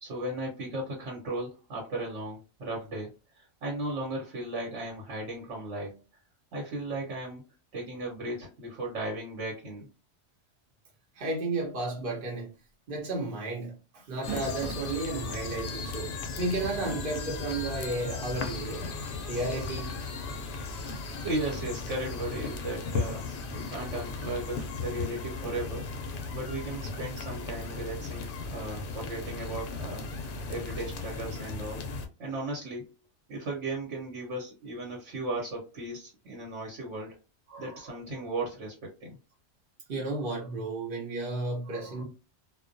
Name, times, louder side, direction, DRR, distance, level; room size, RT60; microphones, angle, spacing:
voice 1, 0.0-6.0 6.5-7.4 7.7-9.9 21.2-25.9 26.3-30.1 30.5-31.9 32.2-32.9 33.3-37.2 37.6-39.2, right 2 dB, 85° right, 1.2 m, -36 dB
voice 2, 11.2-12.5 12.9-18.9 19.3-20.0 37.5-37.9 39.9-42.0, right 2 dB, 50° right, 0.9 m, -33 dB
sound 1, 12.3-12.5 12.9-13.0 14.0-14.9 15.7-15.8 17.4-17.5, right 5 dB, 10° right, 0.4 m, -38 dB
sound 2, 14.2-32.1, left 3 dB, 60° left, 0.6 m, -36 dB
2.2 x 2.2 x 2.5 m
omnidirectional pair, 1.2 m